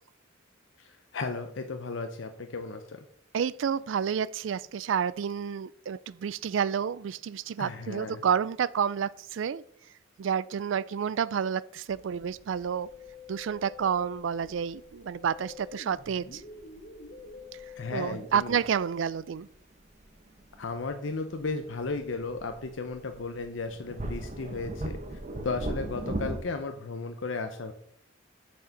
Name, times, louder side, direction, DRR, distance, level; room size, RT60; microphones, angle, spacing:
voice 1, 0.8-3.0 7.6-8.2 17.8-18.6 20.6-25.0 25.4-27.7, left 3 dB, 75° left, 0.7 m, -35 dB
voice 2, 3.3-9.6 10.2-12.9 13.3-16.4 17.9-19.5, right 7 dB, 75° right, 0.4 m, -30 dB
sound 1, 11.9-26.4, right 1 dB, 35° right, 0.9 m, -41 dB
Musical instrument, 12.6-18.6, left 5 dB, 55° left, 1.9 m, -48 dB
6.6 x 6.4 x 5.8 m
head